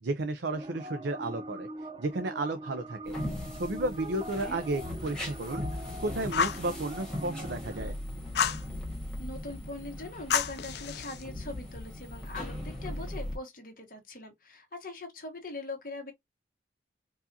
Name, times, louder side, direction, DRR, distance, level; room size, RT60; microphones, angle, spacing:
voice 1, 0.0-1.7 2.0-3.2 3.5-5.6 6.0-8.0, right 2 dB, 80° right, 0.6 m, -33 dB
sound 1, 0.5-7.9, right 1 dB, 25° right, 0.4 m, -42 dB
sound 2, 3.0-13.4, left 1 dB, 5° left, 1.6 m, -39 dB
Fire, 6.3-6.7 8.3-8.6 10.3-11.2, left 7 dB, 65° left, 0.5 m, -29 dB
voice 2, 9.2-16.1, left 2 dB, 50° left, 1.6 m, -41 dB
4.6 x 2.6 x 2.8 m
head